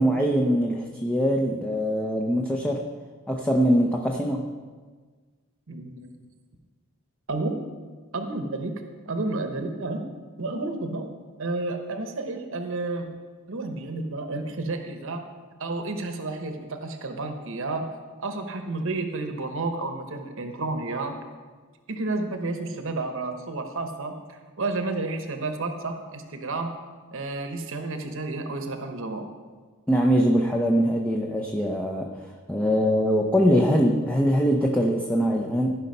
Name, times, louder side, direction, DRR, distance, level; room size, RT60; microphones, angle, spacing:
voice 1, 0.0-2.9 3.3-4.4 29.9-32.1 32.5-35.7, equal, 5° left, 0 dB, 0.6 m, -22 dB
voice 2, 5.7-6.1 7.3-7.7 8.1-8.7 9.1-10.1 10.4-11.1 11.4-13.1 13.5-15.3 15.6-17.9 18.2-21.2 21.9-26.7 27.1-29.3, right 2 dB, 60° right, 6 dB, 1.0 m, -31 dB
15.0 x 5.6 x 5.4 m, 1.5 s
head